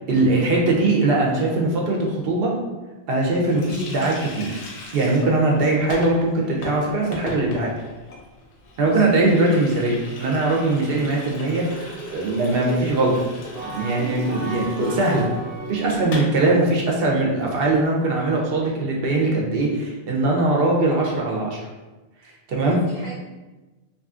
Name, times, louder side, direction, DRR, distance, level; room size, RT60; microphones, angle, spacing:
voice 1, 0.1-2.5 3.1-4.6 4.9-7.7 8.8-13.3 13.6-15.3 15.7-21.6 22.5-22.8, right 2 dB, 65° right, -2 dB, 0.7 m, -21 dB
Water tap faucet, 3.5-16.4 16.6-16.8 17.0-17.8, left 1 dB, 80° left, 0.8 m, -38 dB
voice 2, 8.8-9.1 10.8-11.1 14.3-14.5 18.6-18.8 22.6-23.2, left 2 dB, 55° left, -5 dB, 0.5 m, -38 dB
sound 1, 13.5-16.4, right 3 dB, 35° right, 0.4 m, -34 dB
2.6 x 2.5 x 2.3 m, 1.2 s
omnidirectional pair, 1.1 m